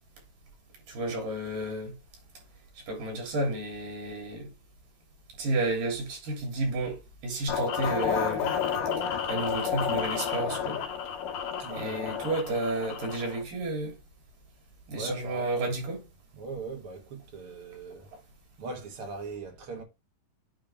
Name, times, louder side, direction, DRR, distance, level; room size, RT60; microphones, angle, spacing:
voice 1, 0.9-1.9 2.9-4.5 5.4-8.5 9.2-10.8 11.7-13.9 14.9-16.0, right 2 dB, 75° right, 4.8 m, -31 dB
sound 1, 7.5-13.4, left 7 dB, 80° left, 2.9 m, -31 dB
voice 2, 11.6-12.1 14.9-15.7 15.9-16.0 16.3-18.1 18.6-19.8, right 3 dB, 50° right, 2.0 m, -40 dB
8.9 x 3.4 x 4.9 m
omnidirectional pair, 4.0 m